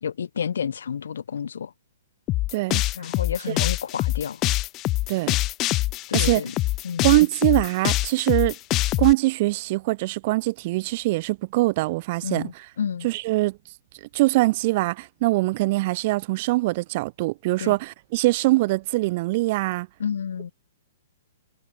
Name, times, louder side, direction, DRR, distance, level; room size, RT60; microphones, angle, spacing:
voice 1, 0.0-1.7 3.0-4.4 6.1-6.5 6.8-7.1 12.2-13.1 17.6-17.8 20.0-20.5, left 7 dB, 80° left, 2.9 m, -30 dB
sound 1, 2.3-9.1, left 18 dB, 25° left, 1.0 m, -24 dB
voice 2, 2.5-2.8 3.5-3.6 5.1-5.4 6.1-6.4 7.0-8.6 9.0-12.7 13.0-13.6 14.1-19.9, right 20 dB, 40° right, 7.9 m, -23 dB
hypercardioid pair, 150°, 0 cm